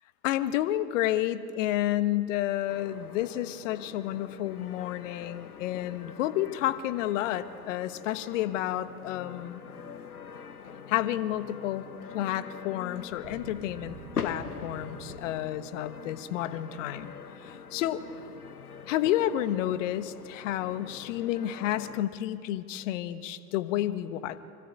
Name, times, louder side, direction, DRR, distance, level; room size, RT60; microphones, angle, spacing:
voice 1, 0.2-9.6 10.9-11.8 12.1-14.0 14.2-17.1 17.4-18.0 18.9-24.4, left 13 dB, 55° left, 14 dB, 1.3 m, -30 dB
sound 1, 2.7-22.0, left 6 dB, 80° left, 1.1 m, -43 dB
sound 2, 13.0-15.8, right 7 dB, 45° right, 2.1 m, -48 dB
25.5 x 24.5 x 8.4 m, 2.7 s
figure-of-eight pair, 75°, 44 cm